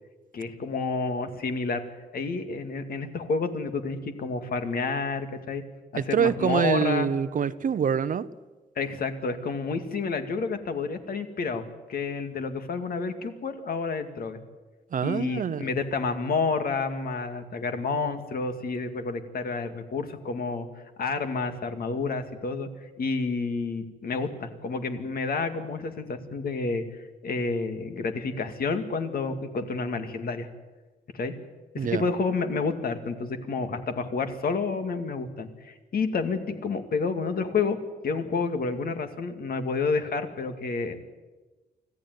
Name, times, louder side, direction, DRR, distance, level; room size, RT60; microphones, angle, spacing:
voice 1, 0.3-1.8 2.1-5.6 5.9-7.1 8.8-11.6 11.9-14.4 15.0-20.7 21.0-22.7 23.0-30.5 31.1-31.3 31.7-37.8 38.0-41.0, left 4 dB, 60° left, 7 dB, 2.3 m, -29 dB
voice 2, 5.9-8.3 14.9-15.7 31.8-32.0, right 7 dB, 50° right, 15 dB, 0.8 m, -25 dB
25.5 x 15.0 x 9.5 m, 1.2 s
wide cardioid pair, 130°, 17 cm